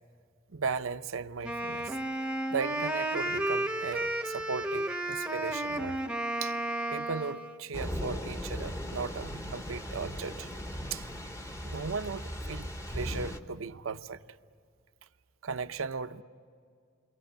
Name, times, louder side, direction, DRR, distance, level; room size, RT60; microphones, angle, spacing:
voice 1, 0.5-2.0 2.5-6.0 6.4-6.6 6.9-10.5 10.9-11.1 11.6-14.2 15.4-16.2, right 5 dB, 70° right, 0.7 m, -37 dB
Wind instrument woodwind instrument, 1.4-7.6, right 1 dB, 5° right, 0.9 m, -32 dB
Thunder / Rain, 7.7-13.4, equal, 15° left, 1.0 m, -38 dB
29.0 x 22.0 x 8.9 m
head